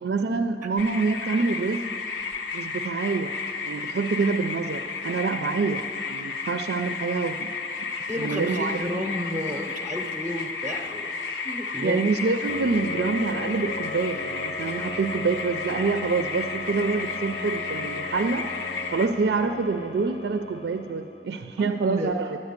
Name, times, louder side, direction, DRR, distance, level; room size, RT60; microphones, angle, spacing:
voice 1, 0.0-1.9 2.5-3.4 3.6-7.5 7.8-8.8 11.8-22.4, right 4 dB, 70° right, 7 dB, 0.4 m, -26 dB
sound 1, 0.8-19.1, left 4 dB, 90° left, 0.8 m, -33 dB
voice 2, 8.1-11.1 11.4-12.0 21.6-22.1, left 1 dB, 10° right, 1 dB, 0.6 m, -32 dB
sound 2, 12.5-21.4, left 2 dB, 35° left, 0.6 m, -38 dB
9.9 x 9.5 x 8.1 m, 2.7 s
head